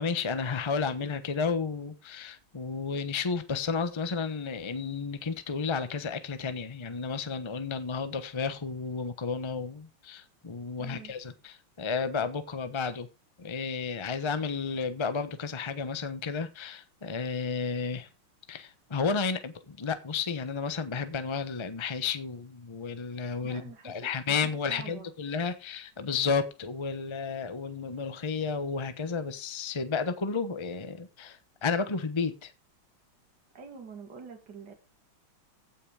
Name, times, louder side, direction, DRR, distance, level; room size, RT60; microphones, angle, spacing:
voice 1, 0.0-13.1 13.4-18.1 18.5-32.5, left 5 dB, 20° left, 0.7 m, -32 dB
voice 2, 10.8-11.1 23.4-25.1 33.5-34.7, right 5 dB, 55° right, 3.0 m, -46 dB
16.0 x 5.9 x 4.9 m
omnidirectional pair, 2.2 m